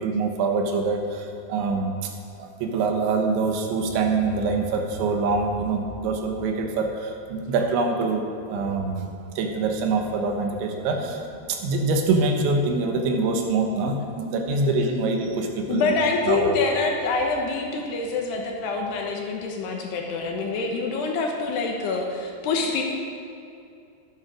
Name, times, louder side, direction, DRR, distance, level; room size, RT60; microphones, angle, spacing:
voice 1, 0.0-2.1 2.4-9.1 9.4-11.2 11.5-15.9 16.3-16.5, right 3 dB, 80° right, 3 dB, 3.4 m, -25 dB
voice 2, 15.7-22.8, left 4 dB, 70° left, 1 dB, 3.0 m, -26 dB
12.5 x 11.5 x 6.4 m, 2.5 s
omnidirectional pair, 5.4 m